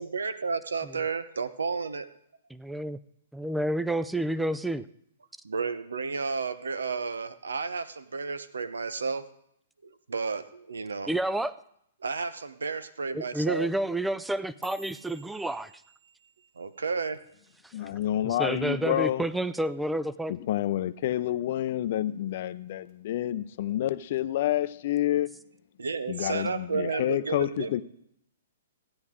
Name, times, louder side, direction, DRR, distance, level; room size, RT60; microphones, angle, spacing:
voice 1, 0.0-2.1 5.4-9.2 9.8-11.1 12.0-13.7 16.6-17.2 25.8-27.8, right 4 dB, 85° right, 0.9 m, -32 dB
voice 2, 2.6-3.0 3.3-4.8 11.1-11.6 13.1-15.7 17.6-17.7 18.2-20.4, right 1 dB, 5° right, 0.4 m, -29 dB
sound 1, 14.2-18.6 18.9-19.3 19.7-20.1 20.5-20.7 21.3-21.7 22.1-22.9 23.3-23.7 24.5-24.6, right 2 dB, 50° right, 2.5 m, -54 dB
voice 3, 17.7-19.2 20.3-25.3 26.1-27.8, left 12 dB, 55° left, 0.5 m, -28 dB
15.5 x 9.7 x 3.7 m
hypercardioid pair, 130°, 0 cm